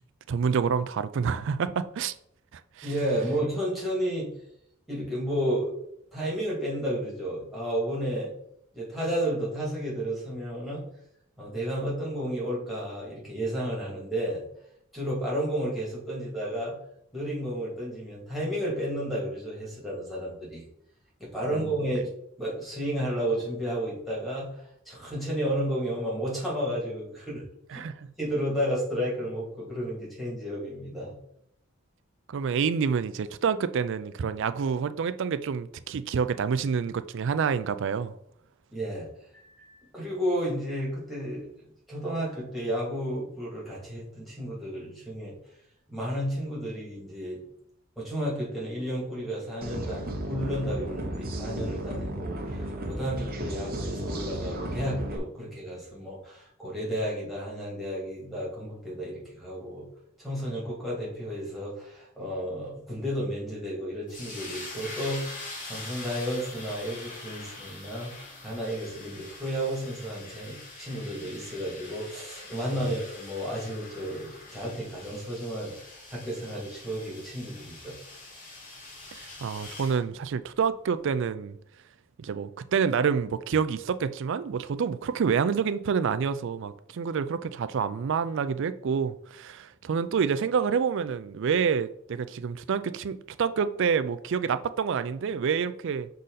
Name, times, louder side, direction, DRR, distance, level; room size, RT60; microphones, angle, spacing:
voice 1, 0.3-2.1 2.5-2.9 21.5-21.6 27.7-28.1 32.3-38.1 79.4-81.6 82.2-96.1, right 6 dB, 60° right, 0.4 m, -28 dB
voice 2, 2.8-4.3 4.9-5.7 6.1-8.3 8.7-10.8 11.4-14.4 14.9-16.8 17.1-20.6 21.2-22.1 22.4-24.5 24.9-27.4 27.7-27.8 28.2-31.1 38.7-39.1 39.3-45.4 45.9-47.4 48.0-59.9 60.2-65.4 65.7-68.1 68.4-77.9, equal, ahead, 2.5 m, -32 dB
sound 1, 49.6-55.2, right 1 dB, 45° right, 1.0 m, -34 dB
sound 2, 64.1-80.0, left 2 dB, 40° left, 2.0 m, -44 dB
6.4 x 3.9 x 4.1 m
head